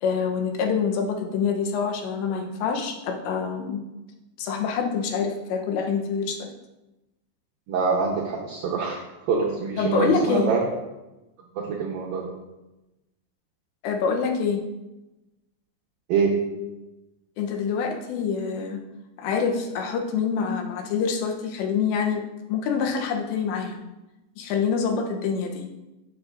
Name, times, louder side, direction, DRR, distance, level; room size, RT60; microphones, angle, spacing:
voice 1, 0.0-3.8 4.4-6.5 9.8-10.5 13.8-14.6 16.5-16.7 17.4-18.8 19.2-22.2 22.5-23.8 24.4-25.7, left 6 dB, 80° left, 3 dB, 2.9 m, -26 dB
voice 2, 7.7-9.0 9.3-10.7 11.6-12.3 16.1-16.4, right 5 dB, 85° right, -1 dB, 2.0 m, -25 dB
13.5 x 7.1 x 2.5 m, 1.0 s
omnidirectional pair, 5.4 m